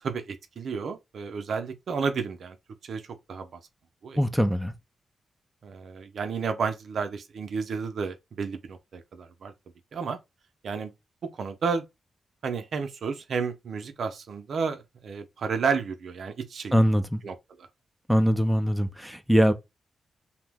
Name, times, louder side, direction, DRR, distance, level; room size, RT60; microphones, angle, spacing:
voice 1, 0.0-2.6 2.8-3.6 4.0-4.2 5.6-9.5 9.9-10.2 10.6-10.9 11.3-11.8 12.4-16.8 17.2-17.7, right 5 dB, 65° right, 0.5 m, -31 dB
voice 2, 4.2-4.7 16.7-17.2 18.1-19.5, equal, ahead, 0.4 m, -22 dB
2.7 x 2.0 x 3.4 m
cardioid pair, 100°, 0 cm